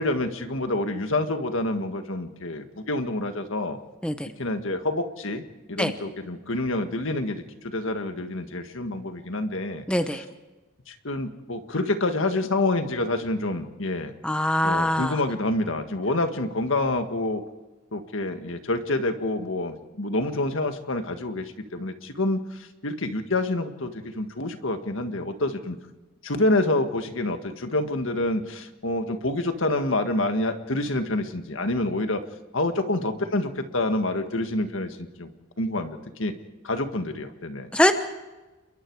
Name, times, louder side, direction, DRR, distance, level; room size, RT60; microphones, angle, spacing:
voice 1, 0.0-3.8 4.4-10.3 10.9-14.1 14.6-17.4 17.9-25.8 26.2-32.3 32.5-35.3 35.6-36.3 36.6-37.7, left 2 dB, 65° left, 7 dB, 1.7 m, -27 dB
voice 2, 9.9-10.2 14.2-15.2 37.7-37.9, left 1 dB, 5° left, 8 dB, 0.9 m, -22 dB
29.0 x 22.5 x 4.8 m, 1.1 s
head